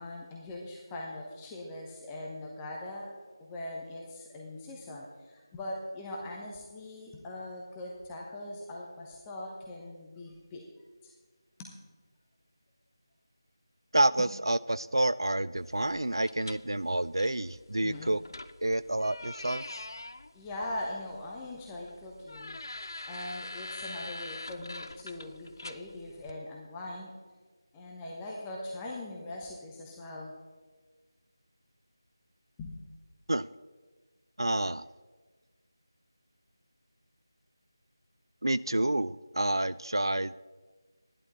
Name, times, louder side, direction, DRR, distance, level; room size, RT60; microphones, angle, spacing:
voice 1, 0.0-10.6 11.0-11.1 11.6-11.7 17.8-18.2 20.3-22.6 23.1-27.1 27.7-30.3 32.6-32.8, left 1 dB, 10° left, -2 dB, 1.0 m, -41 dB
voice 2, 13.9-18.2 18.6-19.6 33.3-33.5 34.4-34.9 38.4-40.3, right 1 dB, 70° right, 17 dB, 0.4 m, -28 dB
sound 1, 15.6-26.3, left 2 dB, 55° left, 0.5 m, -45 dB
13.0 x 11.0 x 4.1 m, 1.3 s
figure-of-eight pair, 165°, 2 cm